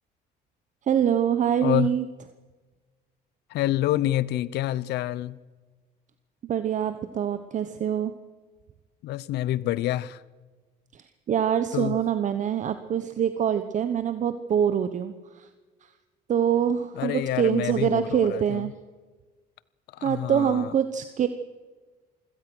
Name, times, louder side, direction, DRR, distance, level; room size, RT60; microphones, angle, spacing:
voice 1, 0.9-2.0 6.4-8.1 10.9-15.5 16.3-18.7 20.0-21.3, right 8 dB, 45° right, 1.1 m, -25 dB
voice 2, 1.6-2.0 3.5-5.4 9.0-10.2 11.7-12.0 16.9-18.7 19.9-20.8, left 14 dB, 80° left, 0.8 m, -27 dB
26.0 x 17.0 x 6.3 m
cardioid pair, 110°, 17 cm